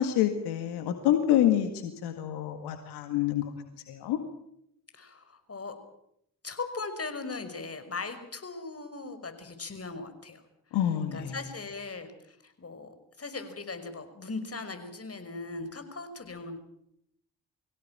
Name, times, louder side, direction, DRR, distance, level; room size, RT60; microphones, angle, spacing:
voice 1, 0.0-3.5 3.9-4.2 10.7-11.4, left 11 dB, 80° left, 7 dB, 1.9 m, -27 dB
voice 2, 4.9-5.8 6.4-10.4 11.1-16.6, left 3 dB, 35° left, 8 dB, 5.7 m, -39 dB
24.0 x 17.0 x 9.0 m, 0.75 s
hypercardioid pair, 45°, 39 cm